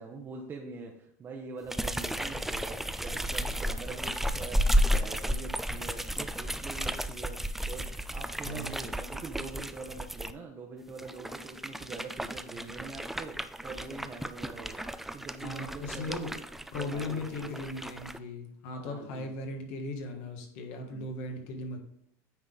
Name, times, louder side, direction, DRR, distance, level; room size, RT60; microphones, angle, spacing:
voice 1, 0.0-16.3 16.7-17.6 18.8-19.4 20.7-21.1, right 4 dB, 30° right, 0 dB, 0.9 m, -44 dB
sound 1, 1.7-10.3 10.9-18.2, equal, 5° right, 0.3 m, -33 dB
voice 2, 8.4-8.8 15.4-16.3 16.7-21.8, left 2 dB, 70° left, 4 dB, 1.6 m, -38 dB
9.0 x 4.0 x 3.9 m, 0.70 s
supercardioid pair, 120°, 8 cm